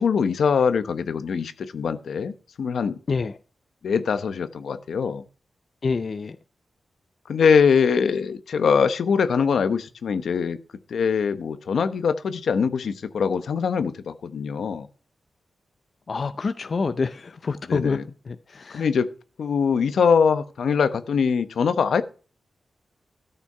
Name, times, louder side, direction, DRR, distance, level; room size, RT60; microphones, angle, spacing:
voice 1, 0.0-3.0 3.8-5.2 7.3-10.6 10.9-14.9 17.7-18.0 18.7-19.1 19.4-22.0, left 6 dB, 80° left, 0.9 m, -22 dB
voice 2, 5.8-6.4 16.1-18.0 18.3-18.9, left 4 dB, 45° left, 0.5 m, -27 dB
13.5 x 5.7 x 5.5 m
wide cardioid pair, 135°, 0 cm